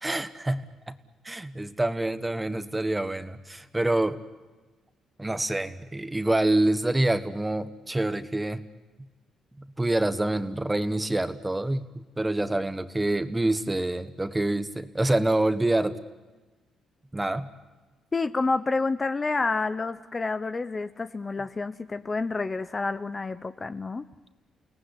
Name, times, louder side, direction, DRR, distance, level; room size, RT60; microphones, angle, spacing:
voice 1, 0.0-1.0 1.2-4.2 5.2-8.6 9.6-16.0 17.1-17.5, right 1 dB, 15° right, 11 dB, 1.4 m, -26 dB
voice 2, 18.1-24.1, left 3 dB, 30° left, 11 dB, 0.8 m, -29 dB
29.5 x 18.5 x 9.9 m, 1.3 s
cardioid pair, 90°, 0 cm